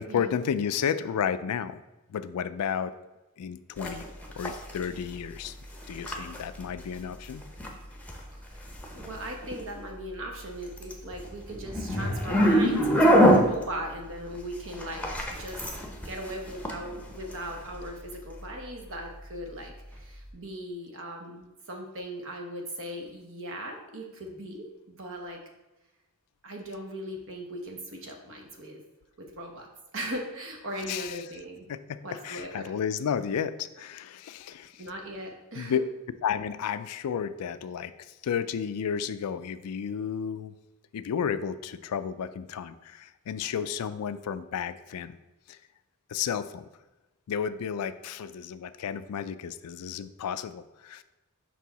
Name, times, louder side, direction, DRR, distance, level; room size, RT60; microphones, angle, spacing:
voice 1, 0.0-1.8 2.1-3.0 3.4-4.1 4.4-5.5 5.9-7.5 30.9-31.3 31.7-34.8 35.6-35.8 36.2-40.5 40.9-45.2 45.5-45.6 46.1-46.7 47.3-51.0, left 7 dB, 80° left, 13 dB, 0.4 m, -32 dB
sound 1, 3.8-20.3, equal, 5° left, 0.8 m, -29 dB
voice 2, 8.9-15.7 16.0-25.4 26.4-28.8 29.2-29.7 29.9-31.7 32.0-32.7 34.8-35.8, right 1 dB, 60° right, 2 dB, 1.1 m, -38 dB
6.0 x 4.6 x 4.0 m, 1.0 s
head